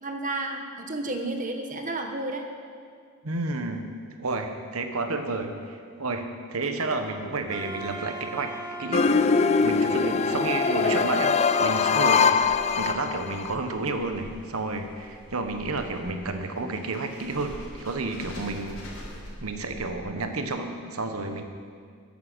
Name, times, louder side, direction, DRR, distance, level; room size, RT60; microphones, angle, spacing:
voice 1, 0.0-2.4, right 2 dB, 35° right, 4 dB, 1.3 m, -31 dB
voice 2, 3.2-3.9 4.2-8.5 8.8-9.1 9.6-12.4 12.8-18.8 19.4-21.4, right 3 dB, 75° right, 6 dB, 1.2 m, -31 dB
Wind instrument woodwind instrument, 7.5-12.5, right 2 dB, 15° right, 1.4 m, -41 dB
sound 1, 8.9-13.5, left 5 dB, 30° left, 0.4 m, -22 dB
sound 2, 12.3-20.4, equal, 70° left, 3.2 m, -45 dB
13.0 x 11.0 x 6.2 m, 2.1 s
head